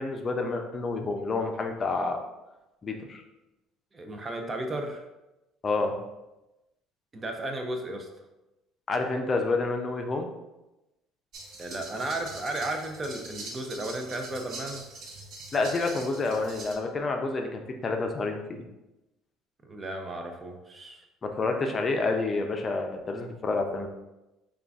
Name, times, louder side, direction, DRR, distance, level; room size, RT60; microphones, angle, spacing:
voice 1, 0.0-2.2 2.8-3.2 5.6-6.0 8.9-10.3 15.5-18.6 21.2-23.9, left 3 dB, 30° left, 4 dB, 0.5 m, -29 dB
voice 2, 3.9-5.1 7.1-8.1 11.6-14.8 19.6-21.0, right 1 dB, 25° right, 4 dB, 0.6 m, -34 dB
sound 1, 11.3-16.7, right 2 dB, 60° right, 0.8 m, -43 dB
3.8 x 2.3 x 3.5 m, 0.98 s
cardioid pair, 105°, 0 cm